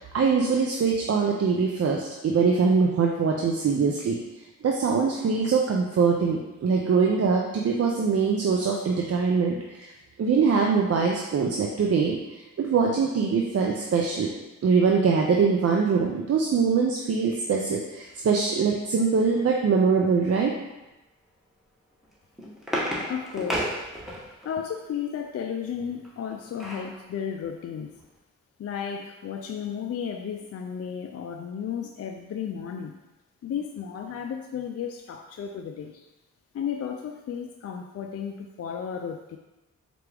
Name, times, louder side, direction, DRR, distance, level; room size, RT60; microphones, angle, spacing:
voice 1, 0.0-4.2 4.6-9.9 10.2-12.2 12.6-14.3 14.6-20.5, right 5 dB, 45° right, 0 dB, 0.5 m, -23 dB
sound 1, 22.0-24.5 26.0-26.9 27.4-27.5 27.8-28.0, equal, ahead, 1.2 m, -32 dB
voice 2, 23.1-23.8 24.4-27.9 28.6-32.9 33.4-36.1 36.5-39.4, left 7 dB, 50° left, 3 dB, 0.4 m, -33 dB
4.4 x 2.5 x 3.4 m, 1.0 s
supercardioid pair, 45°, 33 cm